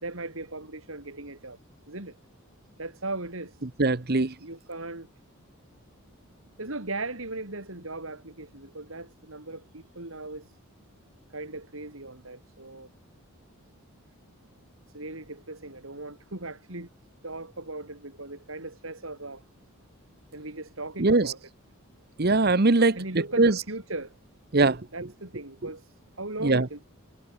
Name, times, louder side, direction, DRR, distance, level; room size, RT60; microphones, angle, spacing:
voice 1, 0.0-1.6 1.9-2.2 2.8-3.7 4.4-5.1 6.6-10.5 11.3-12.9 14.9-16.9 17.2-19.4 20.3-21.4 22.8-24.1 24.9-26.8, right 2 dB, 65° right, 3.7 m, -38 dB
voice 2, 3.8-4.3 21.0-21.3 22.2-23.0 23.4-23.5 24.5-24.9 26.4-26.7, right 3 dB, 45° right, 0.9 m, -21 dB
head